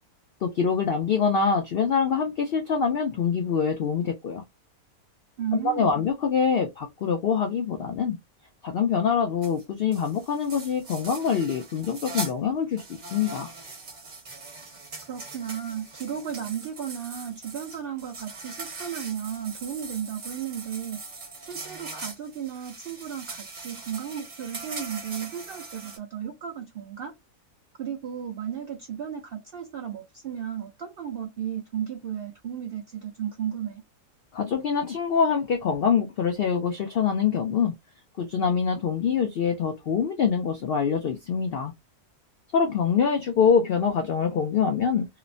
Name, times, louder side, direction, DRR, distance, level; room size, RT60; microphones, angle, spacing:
voice 1, 0.4-4.4 5.6-8.2 8.6-13.5 34.3-37.7 38.2-41.7 42.5-45.1, left 6 dB, 90° left, 0.5 m, -25 dB
voice 2, 5.4-5.9 15.1-21.0 21.5-27.1 27.8-33.8, right 9 dB, 80° right, 0.5 m, -34 dB
sound 1, 9.4-9.6 9.9-12.3 12.7-26.0, right 3 dB, 40° right, 0.7 m, -41 dB
3.0 x 2.0 x 2.5 m
omnidirectional pair, 1.6 m